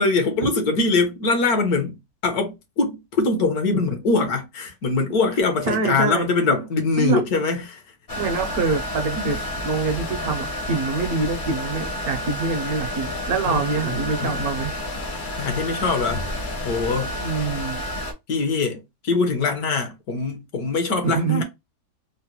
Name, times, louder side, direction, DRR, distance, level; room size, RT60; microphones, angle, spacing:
voice 1, 0.0-2.0 2.2-7.8 9.2-9.4 13.4-14.4 15.4-16.3 16.6-17.2 18.3-21.4, left 3 dB, 65° left, 1.3 m, -23 dB
voice 2, 5.6-6.3 7.0-7.2 8.1-9.4 9.6-14.7 17.2-17.8 21.0-21.4, right 4 dB, 65° right, 1.1 m, -25 dB
sound 1, 8.1-18.1, left 1 dB, 40° left, 0.8 m, -30 dB
3.9 x 2.1 x 2.8 m
omnidirectional pair, 1.9 m